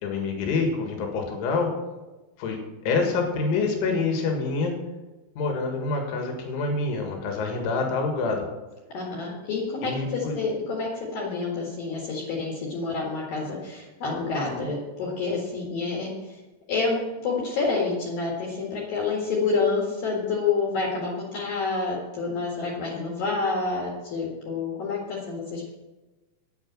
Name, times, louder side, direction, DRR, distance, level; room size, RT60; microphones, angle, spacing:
voice 1, 0.0-1.7 2.4-4.7 5.4-8.4 9.8-10.4, left 4 dB, 90° left, 2 dB, 4.2 m, -26 dB
voice 2, 8.9-16.4 16.7-25.7, left 4 dB, 60° left, -4 dB, 3.4 m, -28 dB
9.9 x 8.6 x 7.4 m, 1.1 s
omnidirectional pair, 5.3 m